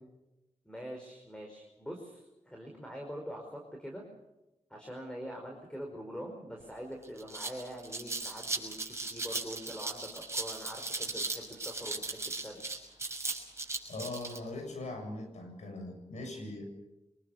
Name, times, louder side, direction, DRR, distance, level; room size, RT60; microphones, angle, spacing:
voice 1, 0.6-4.0 4.7-12.9, equal, 10° left, 1 dB, 4.9 m, -44 dB
sound 1, 6.6-6.7 7.0-14.4, right 3 dB, 25° right, 6.3 m, -37 dB
voice 2, 13.9-16.6, left 2 dB, 75° left, 5 dB, 7.4 m, -40 dB
25.0 x 21.0 x 7.0 m, 0.98 s
cardioid pair, 70°, 12 cm